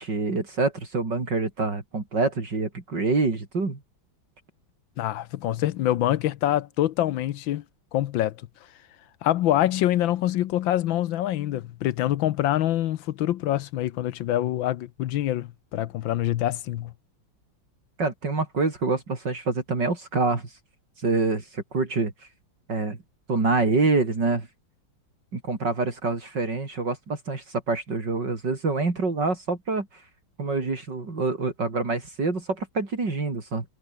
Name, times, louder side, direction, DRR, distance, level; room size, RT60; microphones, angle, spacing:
voice 1, 0.0-3.8 18.0-20.5 21.0-22.1 22.7-23.0 23.3-24.5 25.3-29.9 30.4-33.6, right 3 dB, 55° right, 4.6 m, -26 dB
voice 2, 5.0-7.6 7.9-8.4 9.2-16.9, left 13 dB, 75° left, 1.4 m, -25 dB
omnidirectional pair, 2.3 m